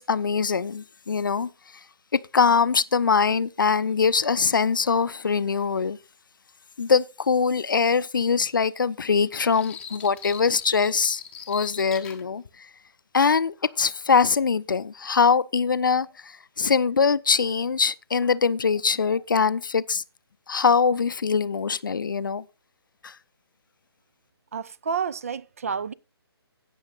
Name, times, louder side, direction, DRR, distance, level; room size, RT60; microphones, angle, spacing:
voice 1, 0.0-1.5 2.1-6.0 6.8-11.2 11.5-12.4 13.1-16.1 16.6-20.0 20.5-22.4 23.0-23.1, left 5 dB, 50° left, 0.6 m, -22 dB
sound 1, 9.3-12.2, left 8 dB, 5° left, 0.8 m, -41 dB
voice 2, 24.5-25.9, right 6 dB, 35° right, 0.4 m, -30 dB
16.5 x 6.4 x 4.0 m
figure-of-eight pair, 140°, 14 cm